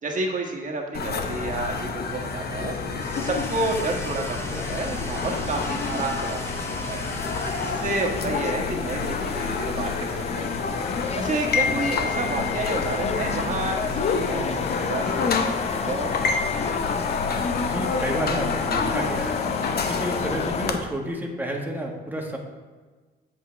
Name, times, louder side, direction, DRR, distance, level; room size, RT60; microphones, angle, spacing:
voice 1, 0.0-2.7 3.2-7.1 7.6-10.5 11.1-16.1, right 2 dB, 40° right, 1 dB, 1.6 m, -30 dB
sound 1, 0.9-20.8, left 4 dB, 55° left, 1.0 m, -28 dB
sound 2, 2.9-8.5, left 1 dB, 15° left, 1.1 m, -39 dB
Subway metro underground, 4.5-20.7, left 6 dB, 35° left, 0.4 m, -32 dB
voice 2, 17.6-19.4 19.8-22.4, right 1 dB, 10° right, 0 dB, 1.5 m, -30 dB
8.0 x 6.9 x 3.4 m, 1.3 s
cardioid pair, 90°, 20 cm